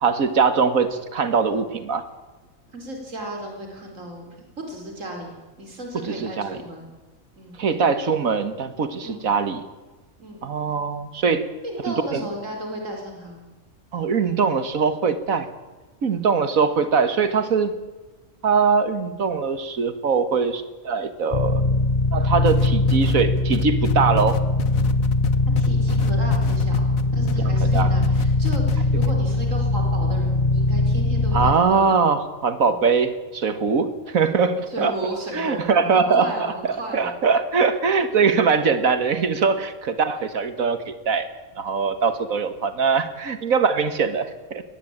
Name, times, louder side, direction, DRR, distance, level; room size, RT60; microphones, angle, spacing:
voice 1, 0.0-2.0 6.0-6.6 7.6-9.6 10.4-11.4 12.1-12.2 13.9-15.5 16.0-17.7 18.4-21.6 22.1-24.4 27.7-27.9 31.3-34.9 35.3-36.3 36.9-41.3 41.6-44.6, right 5 dB, 85° right, 11 dB, 2.0 m, -22 dB
voice 2, 2.7-4.2 4.6-5.3 5.6-6.9 7.4-7.6 9.0-9.3 10.2-10.4 11.6-13.4 25.6-31.9 32.7-32.8 34.7-37.1, right 1 dB, 70° right, 2 dB, 4.7 m, -34 dB
sound 1, 21.3-31.5, left 2 dB, 30° left, 1.2 m, -21 dB
sound 2, 22.5-27.4 27.7-28.8 29.0-29.1, left 8 dB, 85° left, 1.7 m, -28 dB
21.0 x 19.0 x 8.8 m, 1.2 s
omnidirectional pair, 1.4 m